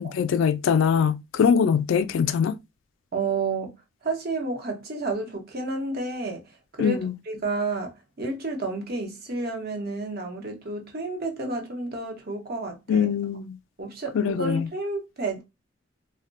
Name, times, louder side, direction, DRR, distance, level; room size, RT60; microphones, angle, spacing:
voice 1, 0.0-2.6 6.8-7.1 12.9-13.6 14.1-14.7, left 7 dB, 70° left, 0.3 m, -22 dB
voice 2, 3.1-3.7 4.0-6.4 6.7-13.1 13.8-15.4, right 3 dB, 50° right, 0.9 m, -31 dB
2.2 x 2.1 x 3.8 m
head